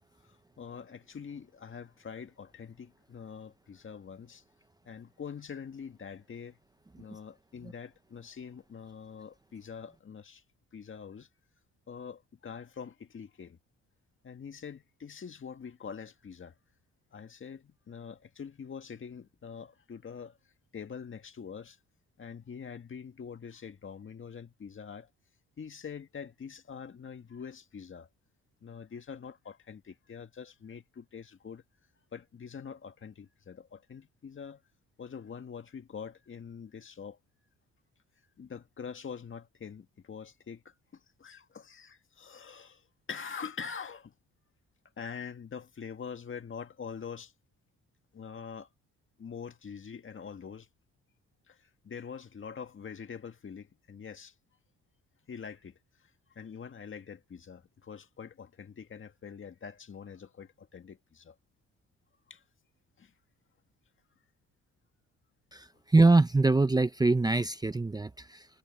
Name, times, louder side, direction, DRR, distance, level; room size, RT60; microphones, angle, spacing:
voice 1, 0.6-4.4 4.8-6.6 7.0-10.4 10.7-11.3 11.9-13.6 14.2-16.6 17.1-20.4 20.7-21.8 22.2-25.1 25.6-28.1 28.6-31.6 32.1-34.6 35.0-37.2 38.4-40.7 41.2-42.8 43.1-44.1 45.0-47.3 48.1-48.7 49.2-50.7 51.5-54.3 55.3-55.8 56.3-61.4 62.3-62.4 63.0-63.1, left 6 dB, 40° left, 1.9 m, -44 dB
voice 2, 65.5-68.5, right 3 dB, 15° right, 0.7 m, -24 dB
cardioid pair, 90°, 30 cm